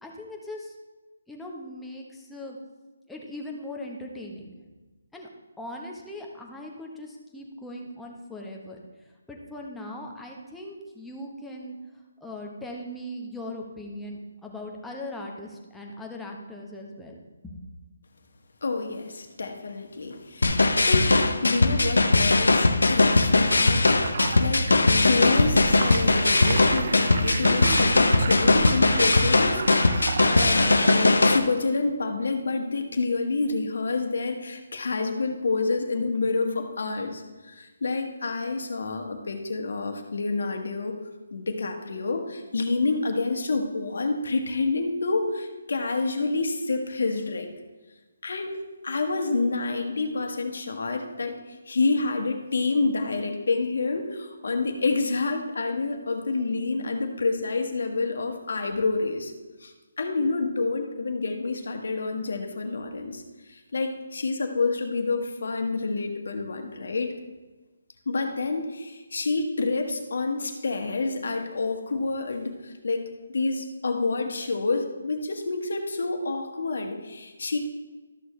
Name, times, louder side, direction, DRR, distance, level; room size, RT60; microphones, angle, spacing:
voice 1, 0.0-0.7 1.3-2.6 3.1-4.5 5.1-5.3 5.6-8.8 9.3-11.8 12.2-17.2 17.4-17.6, left 1 dB, 5° left, -1 dB, 1.0 m, -39 dB
voice 2, 18.6-41.0 41.3-47.5 48.2-59.3 59.6-67.1 68.0-77.6, left 3 dB, 70° left, 4 dB, 1.4 m, -28 dB
sound 1, 20.4-31.4, left 2 dB, 90° left, 0.7 m, -20 dB
sound 2, 21.7-31.4, right 5 dB, 50° right, 0.4 m, -34 dB
13.0 x 6.5 x 3.2 m, 1.2 s
hypercardioid pair, 155°, 0 cm